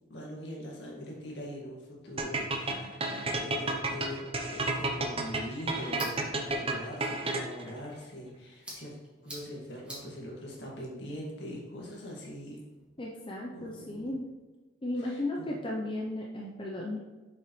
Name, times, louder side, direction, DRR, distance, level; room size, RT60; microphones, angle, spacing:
voice 1, 0.1-9.0 9.2-12.6 13.5-14.1 15.0-15.6, equal, 60° left, -3 dB, 2.0 m, -42 dB
sound 1, 2.2-7.7, right 2 dB, 30° right, 0.7 m, -31 dB
voice 2, 2.7-3.2 13.0-14.3 14.8-17.0, left 1 dB, 25° left, -2 dB, 0.6 m, -35 dB
sound 2, 4.9-12.9, right 1 dB, 5° right, 2.2 m, -51 dB
7.1 x 5.8 x 3.2 m, 1.3 s
head